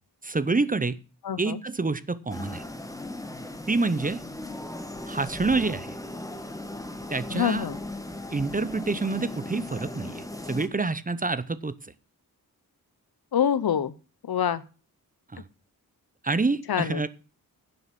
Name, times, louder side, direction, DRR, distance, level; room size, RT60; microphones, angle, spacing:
voice 1, 0.2-1.0 1.4-2.6 3.7-4.2 5.1-5.9 7.1-7.7 8.3-11.7 15.3-15.4 16.2-17.1, right 3 dB, 25° right, 16 dB, 0.7 m, -27 dB
voice 2, 1.2-1.6 7.3-7.8 13.3-13.9 14.2-14.6 16.7-17.0, left 9 dB, 80° left, 16 dB, 1.0 m, -25 dB
sound 1, 2.3-10.7, left 1 dB, 10° left, 1.5 m, -37 dB
11.0 x 7.9 x 5.9 m, 0.34 s
wide cardioid pair, 150°, 36 cm